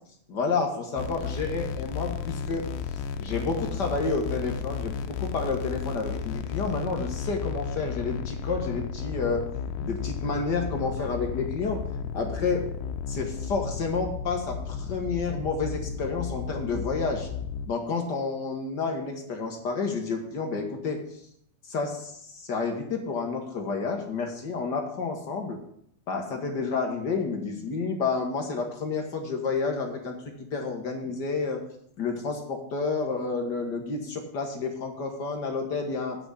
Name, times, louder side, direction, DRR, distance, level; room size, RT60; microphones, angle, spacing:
voice 1, 0.3-2.6 3.2-9.4 9.8-11.8 12.1-12.6 13.1-17.3 17.7-21.0 21.7-25.6 26.1-30.1 30.5-31.6 32.0-36.2, left 4 dB, 50° left, 2 dB, 1.3 m, -30 dB
sound 1, 0.9-17.7, left 6 dB, 85° left, 2.3 m, -33 dB
8.8 x 6.0 x 8.2 m, 0.69 s
omnidirectional pair, 3.7 m